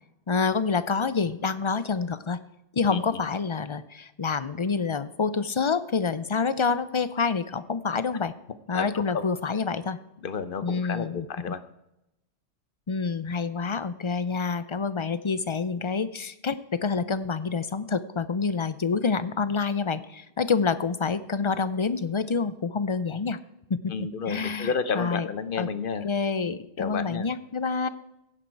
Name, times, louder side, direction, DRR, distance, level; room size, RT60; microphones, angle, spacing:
voice 1, 0.3-2.4 2.7-8.3 8.7-10.0 10.6-11.3 12.9-23.4 23.7-25.3 25.6-25.7 26.0-27.9, left 5 dB, 35° left, 14 dB, 0.5 m, -27 dB
voice 2, 2.9-3.2 8.7-8.9 9.1-9.2 10.2-11.6 23.9-26.1 26.8-27.3, left 5 dB, 55° left, 12 dB, 1.0 m, -31 dB
16.0 x 10.5 x 4.6 m, 0.89 s
omnidirectional pair, 1.1 m